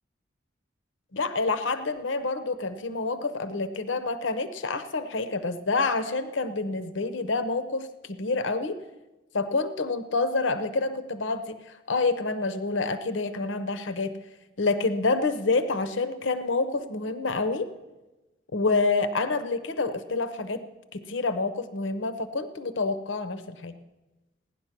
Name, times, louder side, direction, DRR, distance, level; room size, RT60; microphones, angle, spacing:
voice 1, 1.1-8.8 9.3-11.6 11.9-14.2 14.6-17.7 18.5-20.6 20.9-23.8, left 3 dB, 75° left, 11 dB, 0.7 m, -28 dB
17.0 x 10.5 x 5.8 m, 1.1 s
head